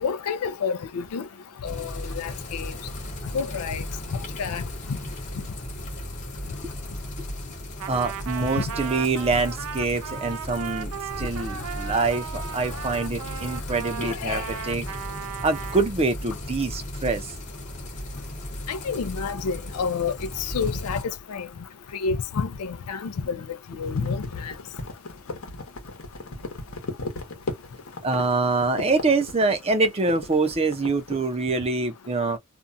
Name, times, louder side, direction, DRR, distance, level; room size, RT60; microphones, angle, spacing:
voice 1, 0.0-1.3 1.6-2.7 3.3-3.8 4.1-4.6 8.6-8.7 14.0-14.5 18.7-21.0 21.3-21.5 21.9-23.5 23.7-24.5, left 5 dB, 85° left, 0.4 m, -29 dB
sound 1, 1.7-21.0, left 1 dB, 35° left, 0.9 m, -36 dB
Trumpet, 7.8-15.9, right 9 dB, 75° right, 0.4 m, -36 dB
voice 2, 7.9-10.9 11.2-14.9 15.4-17.3 28.0-32.4, right 3 dB, 25° right, 0.6 m, -25 dB
sound 2, 23.8-31.3, left 2 dB, 60° left, 1.0 m, -36 dB
2.5 x 2.2 x 2.6 m
head